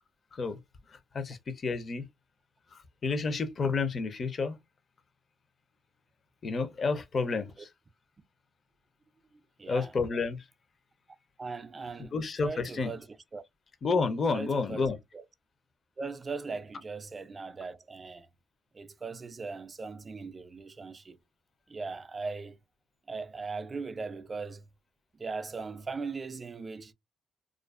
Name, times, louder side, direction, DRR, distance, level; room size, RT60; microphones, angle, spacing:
voice 1, 1.1-2.1 2.7-4.6 6.4-7.7 9.7-10.4 12.1-12.9 13.8-15.0, left 4 dB, 45° left, 0.5 m, -30 dB
voice 2, 7.3-7.7 9.6-9.9 11.4-13.1 13.3-13.4 14.3-14.9 15.1-15.2 16.0-18.3 18.7-21.2 21.7-22.6 23.1-24.7 25.1-26.9, right 4 dB, 30° right, 0.3 m, -39 dB
2.4 x 2.3 x 2.3 m
cardioid pair, 90°, 0 cm